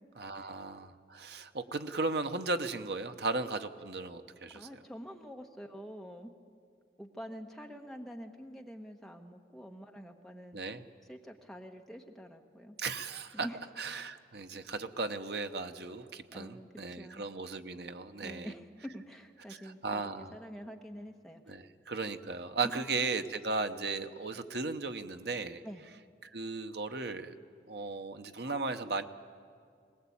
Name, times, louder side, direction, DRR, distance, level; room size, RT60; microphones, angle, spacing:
voice 1, 0.2-4.7 10.5-10.8 12.8-13.5 13.8-18.5 19.8-20.3 21.5-25.6 26.2-27.4 27.7-29.0, right 3 dB, 60° right, 8 dB, 1.0 m, -36 dB
voice 2, 4.5-6.3 7.0-10.6 11.0-12.8 13.3-13.6 16.3-17.3 18.2-21.6 22.6-22.8 25.6-25.8, equal, ahead, 2 dB, 1.2 m, -46 dB
21.5 x 19.5 x 8.6 m, 2.3 s
head